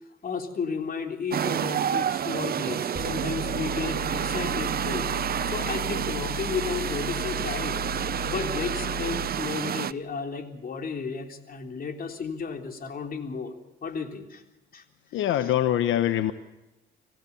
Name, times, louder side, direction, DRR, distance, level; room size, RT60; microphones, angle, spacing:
voice 1, 0.2-5.1 5.4-7.8 8.2-13.5 13.8-14.4 14.7-14.8, left 5 dB, 45° left, 5 dB, 3.6 m, -33 dB
sound 1, 1.3-9.9, right 9 dB, 50° right, 0.8 m, -29 dB
sound 2, 2.9-9.3, left 4 dB, 25° left, 6.1 m, -37 dB
voice 2, 15.1-16.3, left 12 dB, 80° left, 10 dB, 1.1 m, -24 dB
26.5 x 15.5 x 7.0 m, 0.98 s
cardioid pair, 90°, 20 cm